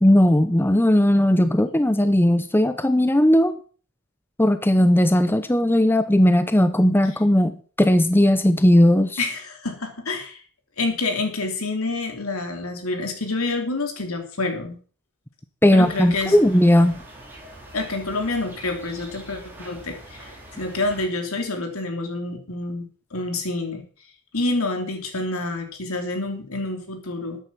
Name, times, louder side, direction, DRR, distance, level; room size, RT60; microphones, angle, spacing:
voice 1, 0.0-3.6 4.4-9.2 15.6-17.0, left 1 dB, 10° left, 11 dB, 0.7 m, -17 dB
voice 2, 9.2-10.4 10.8-14.8 15.7-16.4 17.7-23.8 24.3-27.4, left 2 dB, 75° left, 4 dB, 3.3 m, -28 dB
sound 1, 15.8-21.1, right 1 dB, 10° right, 4.5 m, -43 dB
13.5 x 9.3 x 5.7 m, 0.42 s
head